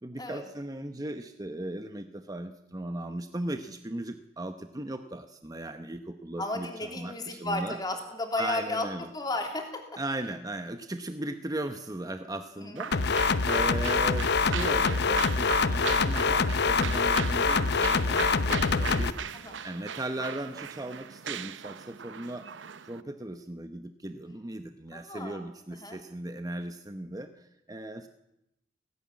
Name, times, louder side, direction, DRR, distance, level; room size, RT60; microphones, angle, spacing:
voice 1, 0.0-7.8 8.4-9.1 10.0-19.1 19.6-22.5 22.8-28.1, right 1 dB, 20° right, 8 dB, 0.9 m, -37 dB
voice 2, 6.4-9.6 12.6-13.2 19.3-19.6 24.9-25.5 25.7-26.0, left 2 dB, 20° left, 3 dB, 3.2 m, -34 dB
sound 1, 12.8-23.0, right 7 dB, 75° right, 0.8 m, -38 dB
sound 2, 12.9-19.1, left 4 dB, 60° left, 0.8 m, -25 dB
17.0 x 16.5 x 9.6 m, 0.85 s
head